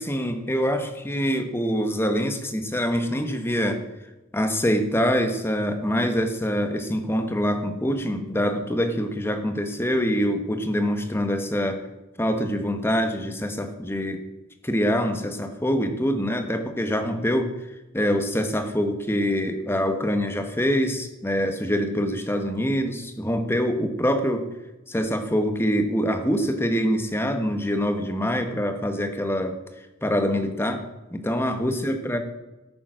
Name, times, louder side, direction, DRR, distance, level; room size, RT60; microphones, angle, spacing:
voice 1, 0.0-3.8 4.3-11.9 12.2-14.2 14.6-17.5 17.9-24.5 24.9-29.6 30.0-30.9 31.1-32.2, equal, 10° left, 7 dB, 1.1 m, -25 dB
13.5 x 7.0 x 6.1 m, 1.0 s
head